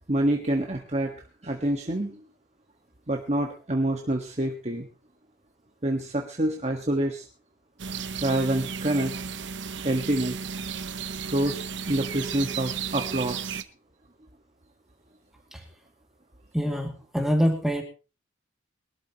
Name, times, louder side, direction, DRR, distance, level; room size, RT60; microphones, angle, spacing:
voice 1, 0.1-1.1 1.4-2.2 3.1-4.9 5.8-7.2 8.2-9.1 9.8-10.4 11.3-11.6 11.9-13.6, right 1 dB, 35° right, 2 dB, 1.5 m, -27 dB
sound 1, 7.8-13.6, right 6 dB, 70° right, 1.0 m, -34 dB
voice 2, 16.5-17.8, equal, ahead, 3 dB, 2.4 m, -25 dB
22.5 x 12.5 x 3.0 m, 0.33 s
head